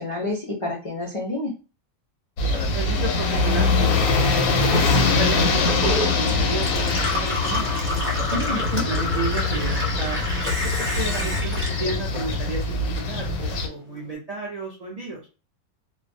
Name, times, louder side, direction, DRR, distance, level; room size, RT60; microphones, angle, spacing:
voice 1, 0.0-1.5 8.3-8.9, left 2 dB, 55° left, -3 dB, 0.3 m, -28 dB
sound 1, 2.4-13.7, left 3 dB, 90° left, 1.0 m, -23 dB
voice 2, 2.5-4.0 4.5-7.7 8.5-10.2 10.8-15.2, right 3 dB, 55° right, -3 dB, 0.4 m, -32 dB
Gurgling / Water tap faucet / Sink (filling or washing), 3.3-12.9 13.2-14.0, left 2 dB, 10° right, 0.7 m, -31 dB
2.2 x 2.1 x 2.6 m, 0.34 s
omnidirectional pair, 1.4 m